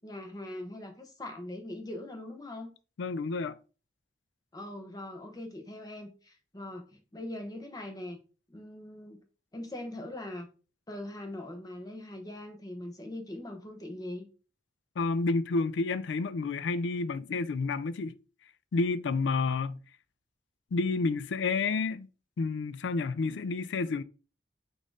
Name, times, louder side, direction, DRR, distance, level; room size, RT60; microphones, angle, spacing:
voice 1, 0.0-2.7 4.5-8.2 8.5-9.2 9.5-10.5 10.9-14.3, left 1 dB, 20° left, 0.8 m, -41 dB
voice 2, 3.0-3.6 15.0-18.2 18.7-19.8 20.7-22.1 22.4-24.0, left 3 dB, 90° left, 0.4 m, -30 dB
4.1 x 2.6 x 4.6 m
head